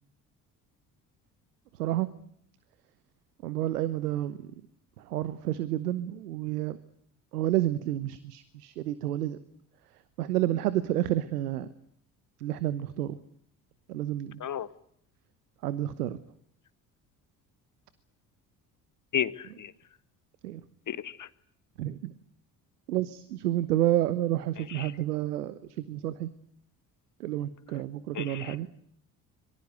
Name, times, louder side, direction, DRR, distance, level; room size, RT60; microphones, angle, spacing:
voice 1, 1.8-2.1 3.4-4.4 5.1-6.8 7.3-9.4 10.2-11.7 12.4-13.2 13.9-14.4 15.6-16.2 20.4-20.6 21.8-22.1 22.9-26.3 27.2-28.7, right 13 dB, 80° right, 15 dB, 1.2 m, -30 dB
voice 2, 19.1-19.7 20.9-21.3 24.6-24.9 28.1-28.6, left 9 dB, 40° left, 15 dB, 1.7 m, -33 dB
26.5 x 23.5 x 8.0 m, 0.67 s
hypercardioid pair, 50°, 46 cm